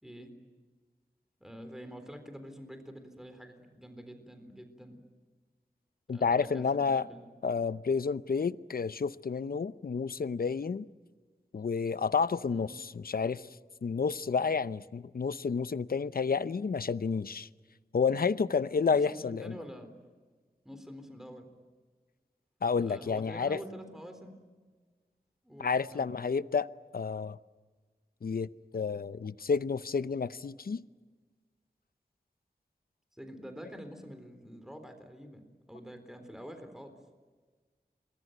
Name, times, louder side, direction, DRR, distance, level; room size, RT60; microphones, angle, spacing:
voice 1, 0.0-0.3 1.4-5.0 6.1-7.3 12.5-12.8 18.8-19.9 20.6-21.5 22.8-24.4 25.4-26.1 33.1-36.9, equal, 5° right, 3.8 m, -47 dB
voice 2, 6.1-7.1 7.4-10.9 11.5-13.5 13.8-17.5 17.9-19.6 22.6-23.6 25.6-27.4 28.2-28.5 28.7-30.8, left 5 dB, 70° left, 0.7 m, -30 dB
27.0 x 21.5 x 9.2 m
cardioid pair, 40°, 16 cm